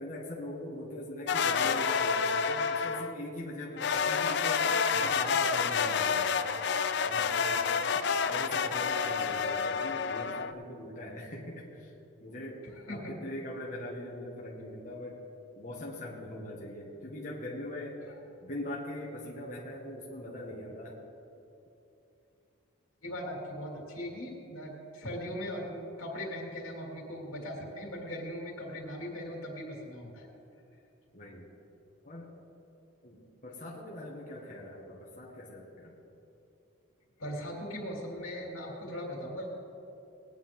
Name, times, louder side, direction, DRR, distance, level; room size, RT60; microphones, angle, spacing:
voice 1, 0.0-6.5 7.0-11.9 12.2-15.2 15.5-18.0 18.4-21.0 31.1-31.5 32.0-32.3 33.0-36.0, left 1 dB, 35° left, -5 dB, 1.6 m, -42 dB
sound 1, 1.3-3.2 3.8-10.5, left 6 dB, 55° left, 0.5 m, -29 dB
voice 2, 23.0-30.3 37.2-39.5, equal, 85° left, -2 dB, 3.2 m, -39 dB
20.0 x 9.7 x 3.7 m, 2.8 s
head